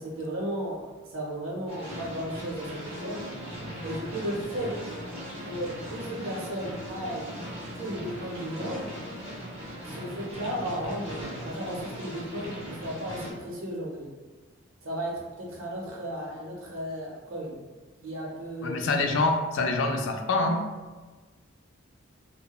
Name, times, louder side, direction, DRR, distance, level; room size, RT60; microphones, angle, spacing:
voice 1, 0.0-3.3 3.8-4.8 5.4-7.4 7.7-9.0 9.8-14.1 14.8-17.6 18.0-18.8, equal, 80° right, -2 dB, 0.7 m, -35 dB
sound 1, 1.7-13.3, equal, 30° right, 0.6 m, -39 dB
voice 2, 18.6-20.6, left 3 dB, 65° left, 4 dB, 0.3 m, -25 dB
2.8 x 2.1 x 2.3 m, 1.3 s
head